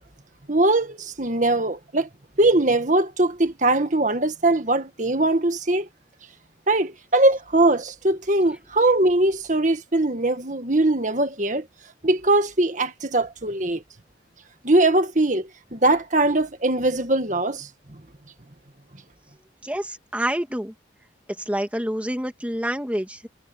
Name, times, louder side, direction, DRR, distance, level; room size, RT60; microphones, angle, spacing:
voice 1, 0.5-2.1 2.4-5.9 6.7-11.6 12.0-13.8 14.6-17.7, right 2 dB, 40° right, 1.8 m, -21 dB
voice 2, 19.6-20.7 21.5-23.3, right 1 dB, 5° right, 2.4 m, -27 dB
head